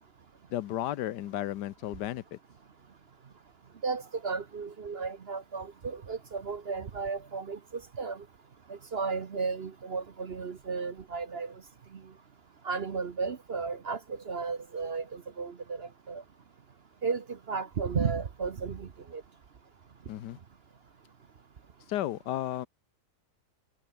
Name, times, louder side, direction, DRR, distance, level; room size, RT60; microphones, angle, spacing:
voice 1, 0.5-2.4 20.1-20.4 21.9-22.7, left 13 dB, 85° left, 1.4 m, -33 dB
voice 2, 3.8-8.2 8.7-11.5 12.6-16.2 17.0-19.2, right 5 dB, 45° right, 1.0 m, -34 dB
omnidirectional pair, 1.8 m